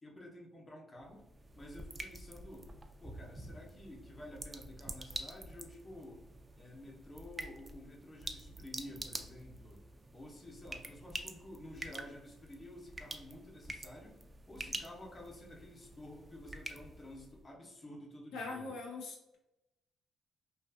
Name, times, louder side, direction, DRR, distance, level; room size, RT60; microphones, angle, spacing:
voice 1, 0.0-1.3 1.5-2.7 3.0-6.2 6.5-9.8 10.1-14.2 14.5-18.7, left 1 dB, 30° left, -1 dB, 0.7 m, -51 dB
sound 1, 1.0-17.5, right 2 dB, 25° right, 0.3 m, -47 dB
voice 2, 18.3-19.4, left 3 dB, 85° left, 0 dB, 0.5 m, -42 dB
2.4 x 2.4 x 2.4 m, 0.92 s
cardioid pair, 90°, 0 cm